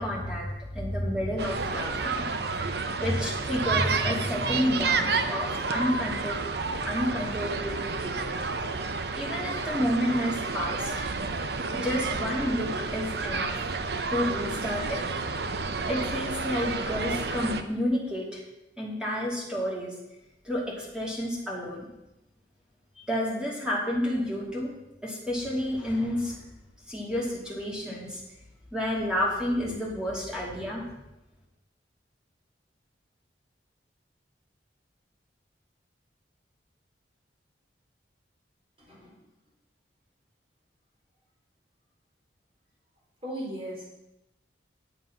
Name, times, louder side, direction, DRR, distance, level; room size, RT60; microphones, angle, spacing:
voice 1, 0.0-6.4 6.8-8.3 9.1-10.9 11.7-13.6 14.1-15.1 15.9-18.4 18.8-19.9 20.4-21.9 23.1-24.7 25.0-26.4 26.9-28.2 28.7-30.9, equal, 5° right, -4 dB, 2.7 m, -30 dB
sound 1, 1.4-17.6, right 4 dB, 60° right, 0.7 m, -30 dB
voice 2, 38.8-39.2 43.2-43.9, right 1 dB, 30° right, -4 dB, 4.3 m, -37 dB
9.7 x 7.7 x 5.8 m, 0.90 s
head